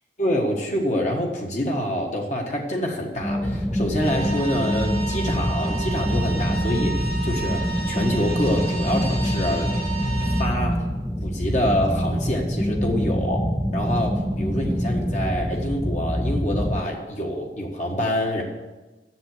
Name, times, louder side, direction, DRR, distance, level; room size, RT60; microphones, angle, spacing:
voice 1, 0.2-9.7 10.4-10.8 11.2-13.4 13.7-18.4, left 1 dB, 40° left, 0 dB, 1.4 m, -26 dB
sound 1, 3.2-16.8, equal, ahead, 0.5 m, -25 dB
sound 2, 4.0-10.4, right 4 dB, 55° left, 3.5 m, -33 dB
7.7 x 7.1 x 7.9 m, 1.1 s
head